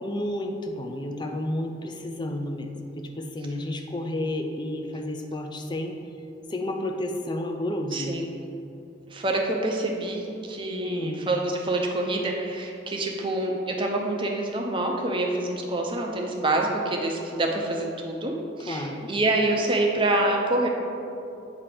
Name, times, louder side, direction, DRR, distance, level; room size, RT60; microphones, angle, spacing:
voice 1, 0.0-6.0 6.5-8.2 10.8-11.3 18.7-19.1, left 1 dB, 25° left, 4 dB, 0.4 m, -31 dB
voice 2, 7.9-8.3 9.1-20.7, right 2 dB, 25° right, 1 dB, 0.6 m, -26 dB
8.3 x 2.9 x 5.0 m, 2.7 s
head